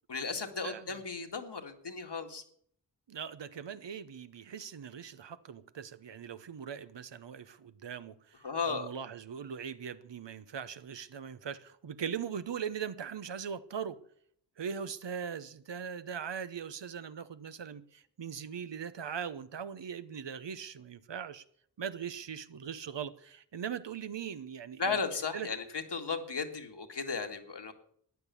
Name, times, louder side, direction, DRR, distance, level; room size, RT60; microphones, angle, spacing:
voice 1, 0.1-2.4 8.4-8.9 24.8-27.7, left 5 dB, 75° left, 2.1 m, -35 dB
voice 2, 0.6-1.0 3.1-14.0 14.6-21.4 21.8-25.0 25.3-25.5, right 7 dB, 90° right, 0.9 m, -40 dB
14.0 x 10.0 x 7.0 m
wide cardioid pair, 75°, 42 cm